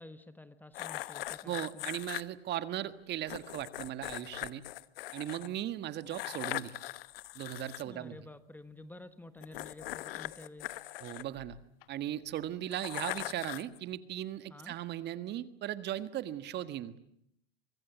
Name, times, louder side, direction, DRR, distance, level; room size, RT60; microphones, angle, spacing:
voice 1, 0.0-2.0 7.8-10.8 14.5-14.7, left 2 dB, 5° left, 11 dB, 1.3 m, -51 dB
sound 1, 0.7-2.2 3.3-5.5 6.1-7.8 9.4-11.9 12.7-13.8, left 16 dB, 65° left, 1.1 m, -41 dB
voice 2, 1.4-4.6 5.1-6.8 7.3-8.1 11.0-11.6 11.9-17.0, right 12 dB, 35° right, 12 dB, 1.6 m, -38 dB
24.5 x 22.0 x 9.4 m, 0.72 s
hypercardioid pair, 120°, 31 cm